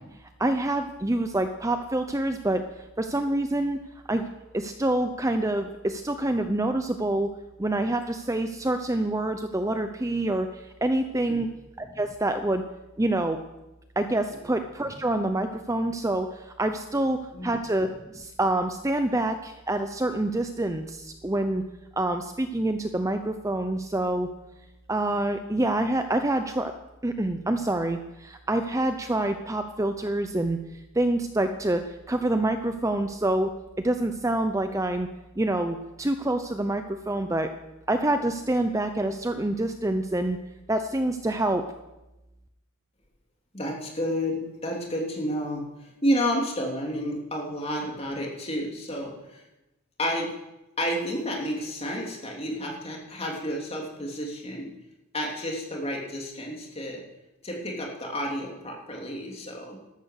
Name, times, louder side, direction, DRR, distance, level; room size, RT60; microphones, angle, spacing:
voice 1, 0.4-3.8 4.1-4.3 4.5-7.3 7.6-11.5 11.8-12.6 13.0-13.4 14.0-21.6 22.0-24.3 24.9-26.7 27.0-30.6 30.9-33.5 33.8-35.1 35.4-37.5 37.9-40.4 40.7-41.7, right 1 dB, 15° right, 8 dB, 0.6 m, -26 dB
voice 2, 43.5-49.4 50.0-50.3 50.8-54.7 55.1-57.0 57.4-59.8, equal, 30° left, -1 dB, 3.2 m, -30 dB
13.5 x 13.0 x 6.6 m, 0.98 s
head